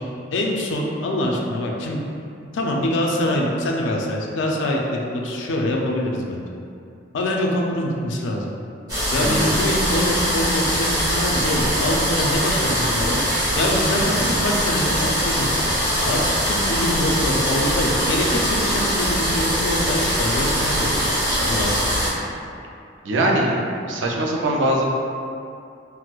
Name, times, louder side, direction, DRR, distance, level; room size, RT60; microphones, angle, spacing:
voice 1, 0.3-2.0 2.5-6.5 7.1-8.5 9.1-13.2 13.5-15.7 16.0-21.1 21.4-21.8, left 1 dB, 80° left, 0 dB, 0.4 m, -24 dB
sound 1, 8.9-22.1, equal, 20° right, 1.2 m, -22 dB
voice 2, 9.2-9.5 23.0-24.8, right 1 dB, 80° right, -1 dB, 0.4 m, -22 dB
4.3 x 2.0 x 2.3 m, 2.5 s
head